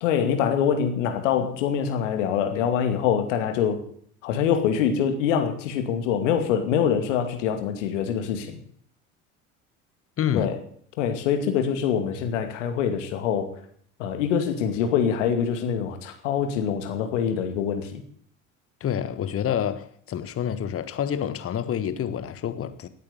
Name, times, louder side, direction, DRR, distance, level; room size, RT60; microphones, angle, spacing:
voice 1, 0.0-3.8 4.2-8.6 10.3-10.6 11.0-13.6 14.0-18.0, left 8 dB, 70° left, 2.4 m, -24 dB
voice 2, 10.2-10.5 18.8-22.9, left 9 dB, 35° left, 1.3 m, -28 dB
17.5 x 8.8 x 7.0 m
figure-of-eight pair, 65°, 38 cm